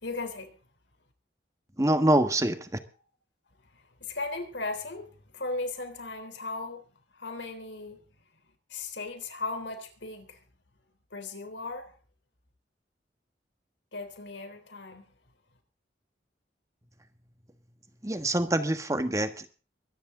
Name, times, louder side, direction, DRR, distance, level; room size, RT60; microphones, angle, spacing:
voice 1, 0.0-0.6 4.0-6.8 7.1-8.0 8.7-10.4 11.1-11.9 13.9-15.1, left 3 dB, 90° left, 3.7 m, -37 dB
voice 2, 1.8-2.7 18.0-19.5, right 1 dB, 20° right, 1.5 m, -25 dB
23.5 x 10.5 x 3.8 m
head